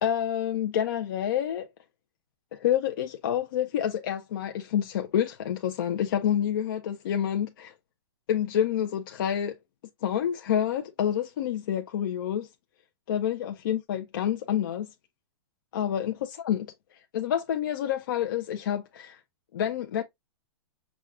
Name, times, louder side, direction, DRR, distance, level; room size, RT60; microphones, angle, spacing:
voice 1, 0.0-1.7 2.5-7.7 8.3-9.5 10.0-12.5 13.1-14.9 15.7-16.7 16.9-19.2 19.5-20.0, left 10 dB, 50° left, 0.5 m, -28 dB
6.1 x 2.2 x 3.6 m
supercardioid pair, 180°, 14 cm